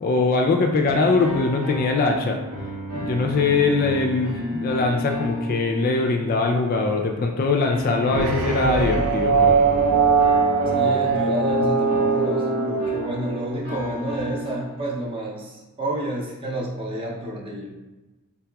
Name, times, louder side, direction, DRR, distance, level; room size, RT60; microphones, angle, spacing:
voice 1, 0.0-2.4 2.9-9.6, left 3 dB, 40° left, 3 dB, 0.3 m, -22 dB
sound 1, 0.8-6.6 7.6-15.0, equal, 85° right, 1.4 m, -32 dB
sound 2, 8.1-13.6, right 5 dB, 70° right, 0.4 m, -21 dB
voice 2, 10.7-17.7, right 1 dB, 25° right, -2 dB, 0.6 m, -30 dB
3.9 x 2.8 x 2.2 m, 1.1 s
head